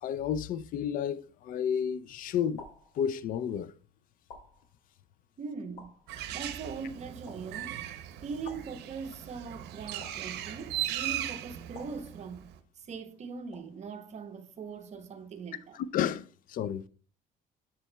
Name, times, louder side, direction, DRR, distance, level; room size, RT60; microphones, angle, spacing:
voice 1, 0.0-2.7 3.0-3.7 15.7-16.8, left 8 dB, 55° left, 0.4 m, -31 dB
sound 1, 1.4-1.9 2.6-3.5 4.3-5.2 5.8-6.6 7.3-7.9 8.5-9.4 10.0-10.9 11.7-12.7 13.5-14.1, left 2 dB, 75° left, 2.1 m, -54 dB
voice 2, 5.4-5.9 6.3-7.8 8.2-12.5 12.8-15.8, right 5 dB, 40° right, 0.8 m, -41 dB
Bird, 6.1-12.6, right 12 dB, 80° right, 0.7 m, -38 dB
7.0 x 6.7 x 2.2 m
cardioid pair, 110°, 17 cm